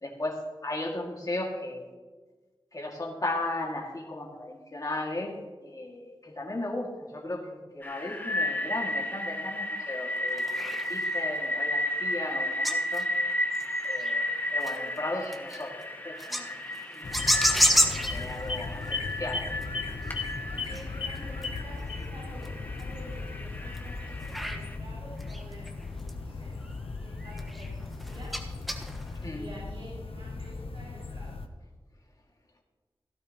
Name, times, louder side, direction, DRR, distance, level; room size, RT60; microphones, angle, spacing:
voice 1, 0.0-1.9 2.7-5.4 5.6-13.1 13.8-16.5 18.1-19.5 29.2-29.5, left 2 dB, 40° left, -1 dB, 2.1 m, -36 dB
sound 1, 7.8-24.8, left 1 dB, 20° left, 1.6 m, -33 dB
sound 2, 10.2-11.2 11.6-14.2 14.5-29.3, equal, ahead, 1.3 m, -32 dB
sound 3, 17.0-31.5, left 3 dB, 85° left, 0.8 m, -37 dB
voice 2, 20.5-26.5 27.0-28.3 29.3-31.3, equal, 75° right, -8 dB, 4.4 m, -49 dB
17.0 x 12.0 x 3.0 m, 1.3 s
wide cardioid pair, 55°, 9 cm